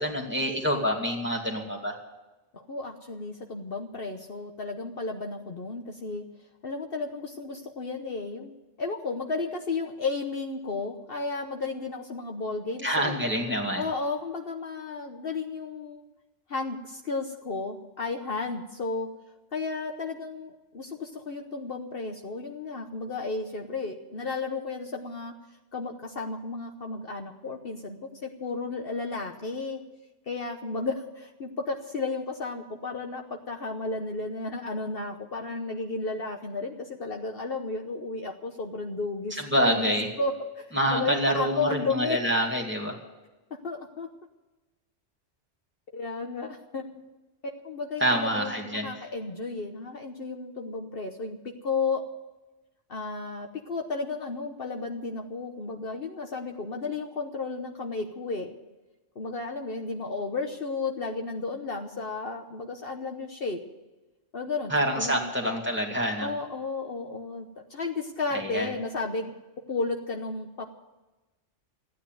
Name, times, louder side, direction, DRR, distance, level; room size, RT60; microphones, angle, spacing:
voice 1, 0.0-2.0 12.8-13.8 39.3-40.1 40.7-42.9 48.0-48.9 64.7-66.3 68.3-68.7, equal, 10° right, 0 dB, 2.5 m, -27 dB
voice 2, 2.5-6.2 6.6-8.5 8.8-13.2 13.8-16.0 16.5-19.1 19.5-25.3 25.7-29.8 30.3-42.2 43.6-44.1 45.9-46.8 47.4-51.4 51.6-52.0 52.9-58.5 59.2-63.6 64.3-65.3 66.0-69.3 69.7-70.6, left 3 dB, 55° left, 3 dB, 1.2 m, -33 dB
14.5 x 9.5 x 9.3 m, 1.1 s
omnidirectional pair, 1.2 m